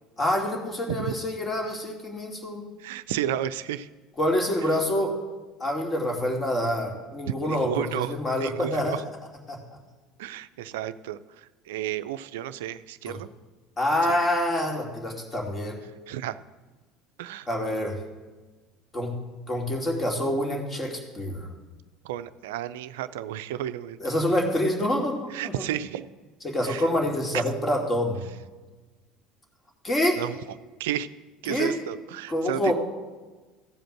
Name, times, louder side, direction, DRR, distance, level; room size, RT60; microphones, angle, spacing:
voice 1, 0.2-2.6 4.2-5.2 5.6-9.0 9.5-9.6 13.1-13.2 13.8-15.7 17.5-17.9 18.9-19.1 19.5-21.5 24.0-25.1 25.4-25.7 26.4-28.2 29.8-30.2 31.5-31.7 32.3-32.7, left 1 dB, 25° left, 1 dB, 2.6 m, -26 dB
voice 2, 2.8-3.9 7.3-9.0 10.2-11.2 11.7-13.3 14.1-14.2 16.1-16.4 17.2-17.5 22.0-24.0 25.3-26.1 26.6-26.9 27.3-27.4 30.2-30.4 30.8-31.1 31.4-32.7, right 12 dB, 70° right, 14 dB, 0.4 m, -32 dB
15.0 x 5.1 x 7.7 m, 1.3 s
figure-of-eight pair, 65°, 0 cm